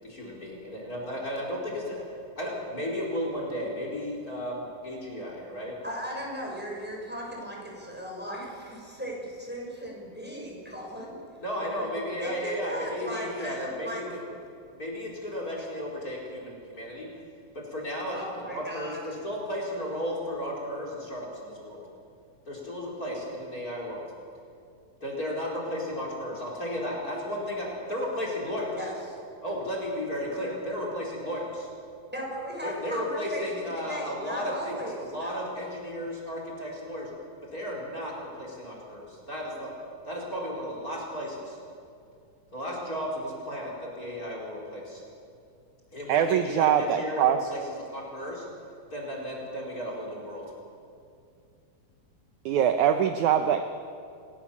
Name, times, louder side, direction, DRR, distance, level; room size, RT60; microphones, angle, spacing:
voice 1, 0.0-5.8 11.4-14.4 14.7-17.1 17.5-21.8 22.4-24.1 25.0-28.9 29.4-31.7 32.6-37.1 37.4-39.7 40.0-41.6 42.5-45.0 45.9-47.6 47.9-48.5 48.9-50.5, equal, 25° left, -2 dB, 4.8 m, -34 dB
voice 2, 5.8-11.2 11.6-14.0 18.0-19.0 28.7-28.9 32.1-35.4, equal, 5° right, -2 dB, 5.8 m, -37 dB
voice 3, 46.1-47.4 52.5-53.6, right 9 dB, 75° right, 7 dB, 1.9 m, -23 dB
30.0 x 16.0 x 7.2 m, 2.4 s
omnidirectional pair, 4.3 m